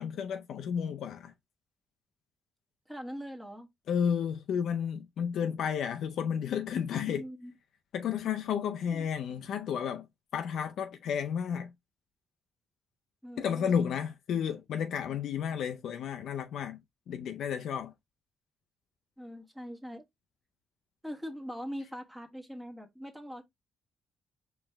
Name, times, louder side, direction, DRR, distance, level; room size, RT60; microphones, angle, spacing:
voice 1, 0.0-1.3 3.9-7.2 7.9-10.1 10.3-11.7 13.4-16.8 17.1-17.9, left 8 dB, 70° left, 0.5 m, -32 dB
voice 2, 2.9-3.7 7.1-7.6 8.8-9.1 13.2-13.8 19.2-20.0 21.0-23.4, equal, 5° right, 1.4 m, -42 dB
4.4 x 3.2 x 3.4 m
cardioid pair, 90°, 0 cm